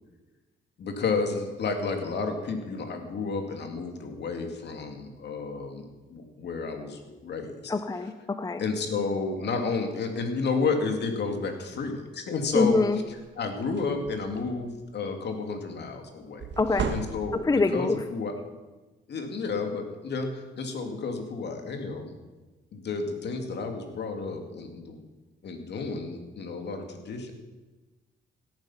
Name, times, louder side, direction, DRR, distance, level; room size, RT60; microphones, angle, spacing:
voice 1, 0.8-7.7 8.6-12.9 13.4-16.5 16.9-18.3 19.1-22.1 22.7-25.0 25.4-27.3, left 4 dB, 60° left, 4 dB, 2.5 m, -31 dB
voice 2, 7.7-8.6 12.5-13.0 16.6-16.9 17.3-18.0, left 3 dB, 20° left, 10 dB, 0.6 m, -25 dB
sound 1, 12.7-12.8 13.2-13.3 13.6-14.7 16.4-17.6, right 5 dB, 65° right, 1.6 m, -34 dB
17.0 x 9.0 x 5.7 m, 1.2 s
cardioid pair, 90°, 20 cm